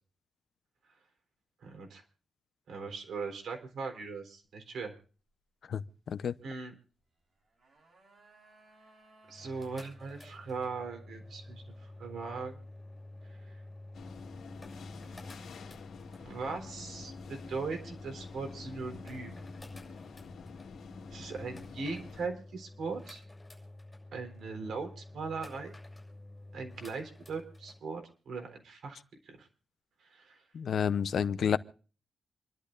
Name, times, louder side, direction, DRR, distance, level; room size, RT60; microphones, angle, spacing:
voice 1, 1.6-2.0 2.7-4.9 6.4-6.7 9.3-12.6 13.2-13.6 16.2-19.4 21.1-23.2 24.1-25.8 26.5-29.0 29.2-29.5 30.0-30.4, right 4 dB, 75° right, 4.0 m, -39 dB
sound 1, 7.3-9.9 10.1-10.2, right 2 dB, 45° right, 4.1 m, -61 dB
sound 2, 9.3-27.8, left 1 dB, 10° left, 6.8 m, -49 dB
sound 3, 13.9-22.3, left 5 dB, 80° left, 2.0 m, -48 dB
voice 2, 30.5-31.6, left 7 dB, 60° left, 0.7 m, -29 dB
28.0 x 12.0 x 2.6 m
wide cardioid pair, 155°, 0 cm